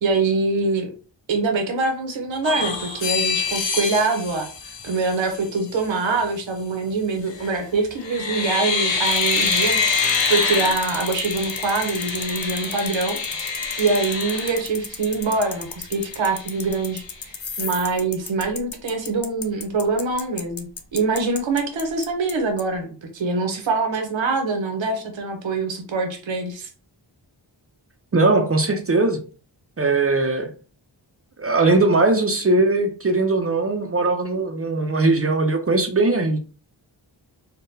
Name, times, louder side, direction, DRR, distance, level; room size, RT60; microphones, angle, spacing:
voice 1, 0.0-0.9 1.3-4.5 4.8-26.7, right 3 dB, 75° right, 4 dB, 0.8 m, -24 dB
sound 1, 2.4-5.5 7.3-7.6 8.0-15.3 15.7-15.8 16.1-17.0 17.4-17.9, left 4 dB, 70° left, 0.8 m, -26 dB
sound 2, 9.1-22.3 22.6-22.7, left 5 dB, 35° left, 0.4 m, -33 dB
voice 2, 28.1-29.2 29.8-30.5 31.4-36.4, right 2 dB, 30° right, 6 dB, 0.4 m, -20 dB
3.6 x 2.2 x 2.6 m, 0.38 s
wide cardioid pair, 90°, 46 cm